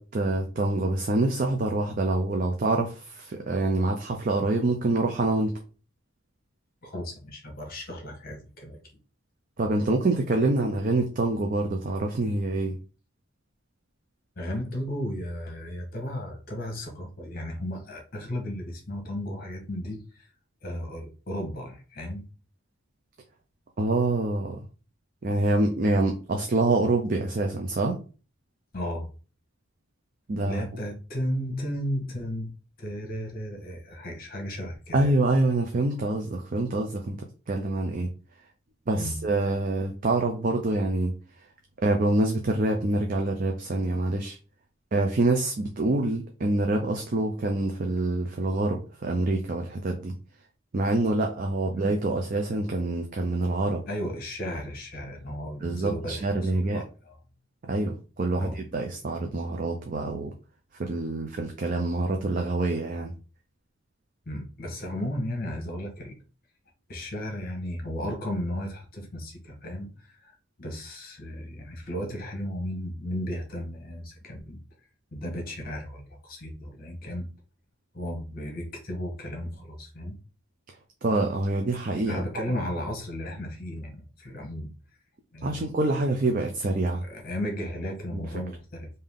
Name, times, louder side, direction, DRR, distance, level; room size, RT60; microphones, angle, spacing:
voice 1, 0.0-5.6 9.6-12.8 23.8-24.6 25.2-28.0 30.3-30.6 34.9-38.1 38.9-41.1 41.8-44.4 44.9-50.1 50.7-53.8 55.6-56.8 57.7-60.3 60.8-63.1 81.0-82.2 85.4-87.0 88.1-88.2, right 2 dB, 40° right, 0.5 m, -26 dB
voice 2, 6.8-8.8 14.4-20.3 20.6-22.3 28.7-29.1 30.4-32.5 32.8-35.1 38.9-39.2 51.7-51.8 53.9-57.2 58.3-58.6 64.3-66.2 66.9-74.6 75.1-77.3 77.9-80.2 82.1-84.7 85.3-85.8 87.0-88.9, equal, 45° left, 1.2 m, -34 dB
3.6 x 2.7 x 3.5 m
head